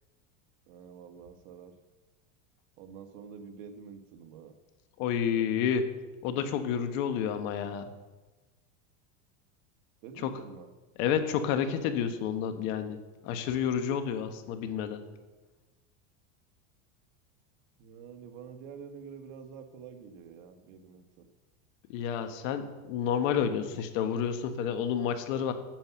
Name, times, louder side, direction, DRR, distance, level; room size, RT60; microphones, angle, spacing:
voice 1, 0.7-1.7 2.8-4.5 10.0-10.7 17.8-21.3, right 6 dB, 65° right, 6 dB, 1.4 m, -47 dB
voice 2, 5.0-5.9 6.2-7.9 10.2-10.3 11.0-13.0 13.2-15.0 21.9-25.5, left 8 dB, 65° left, 8 dB, 1.4 m, -30 dB
9.0 x 7.0 x 7.0 m, 1.2 s
supercardioid pair, 130°, 42 cm